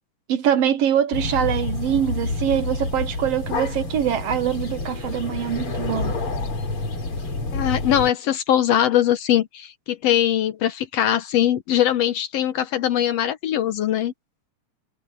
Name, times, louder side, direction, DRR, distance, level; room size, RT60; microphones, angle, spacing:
voice 1, 0.3-6.2, right 9 dB, 65° right, 1.8 m, -23 dB
sound 1, 1.1-8.1, left 3 dB, 45° left, 5.0 m, -28 dB
voice 2, 7.5-14.1, left 11 dB, 70° left, 1.8 m, -21 dB
omnidirectional pair, 3.4 m